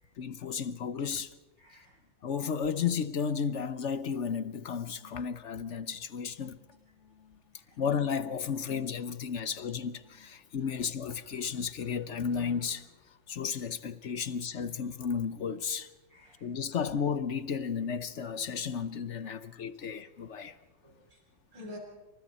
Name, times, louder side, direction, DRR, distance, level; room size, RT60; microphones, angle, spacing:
voice 1, 0.2-1.3 2.2-6.6 7.0-7.4 7.8-15.9 16.4-20.6, left 6 dB, 55° left, 0.8 m, -33 dB
voice 2, 1.6-2.0 7.5-7.8 10.6-10.7 16.1-16.6 19.2-19.4 20.8-21.2 21.5-21.8, left 1 dB, 60° right, 7.5 m, -50 dB
28.0 x 25.5 x 4.2 m
omnidirectional pair, 2.2 m